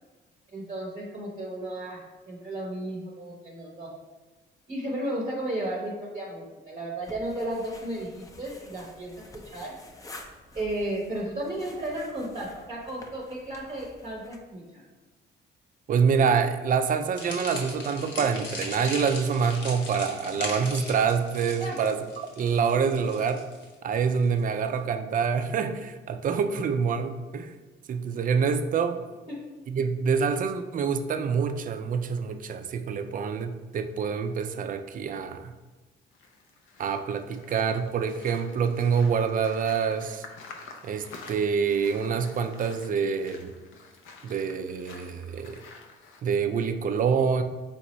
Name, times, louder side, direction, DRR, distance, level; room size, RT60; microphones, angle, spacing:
voice 1, 0.5-3.9 4.7-9.8 10.5-14.8 21.6-21.8 29.3-29.4, right 1 dB, 25° right, -4 dB, 0.8 m, -34 dB
sound 1, 7.0-14.4, left 1 dB, 15° left, 0.5 m, -49 dB
voice 2, 15.9-22.0 22.4-23.4 23.8-27.5 27.9-29.0 29.7-35.5 36.8-40.2 40.8-43.5 44.2-45.6 46.2-47.4, right 6 dB, 45° right, 8 dB, 0.4 m, -26 dB
sound 2, 17.2-24.4, left 2 dB, 65° left, 1.0 m, -38 dB
sound 3, 36.1-46.2, left 4 dB, 85° left, 0.6 m, -49 dB
4.0 x 3.5 x 3.0 m, 1.2 s
cardioid pair, 90°, 20 cm